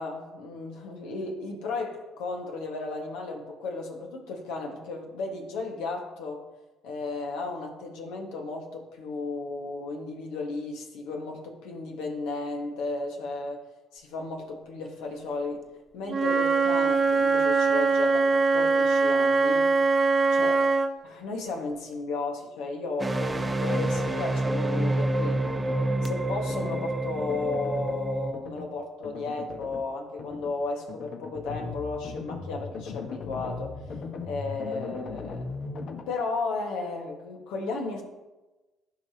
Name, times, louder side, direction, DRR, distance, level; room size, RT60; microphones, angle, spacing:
voice 1, 0.0-6.4 6.8-13.6 13.9-15.6 15.9-19.7 20.3-20.5 21.0-25.4 26.0-33.7 34.2-35.5 36.1-38.0, left 3 dB, 75° left, 1 dB, 1.5 m, -34 dB
Wind instrument woodwind instrument, 16.1-20.9, right 4 dB, 40° right, 1.0 m, -22 dB
sound 1, 23.0-28.3, right 1 dB, 20° right, 0.9 m, -28 dB
sound 2, 23.7-24.3 24.6-25.0 25.3-26.1 26.5-26.8 27.2-28.0 28.3-28.7 29.0-29.8 30.2-30.5 30.9-36.0, left 4 dB, 60° left, 1.2 m, -39 dB
14.5 x 5.3 x 2.9 m, 1.1 s
hypercardioid pair, 55°, 0 cm